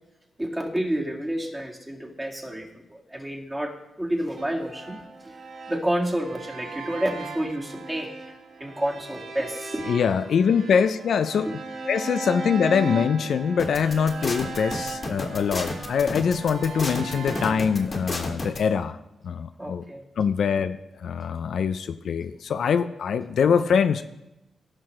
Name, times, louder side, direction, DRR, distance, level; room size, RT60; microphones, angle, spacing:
voice 1, 0.4-5.0 5.7-8.1 8.6-9.9 19.6-20.0, right 1 dB, 15° right, -1 dB, 2.1 m, -29 dB
sound 1, 4.4-17.9, right 3 dB, 75° right, 1.2 m, -37 dB
voice 2, 9.9-11.6 11.8-19.0 19.2-19.8 20.2-24.0, left 6 dB, 75° left, 11 dB, 0.4 m, -23 dB
sound 2, 13.6-18.6, left 2 dB, 45° left, 1.6 m, -31 dB
16.0 x 5.9 x 3.2 m, 0.91 s
cardioid pair, 70°, 0 cm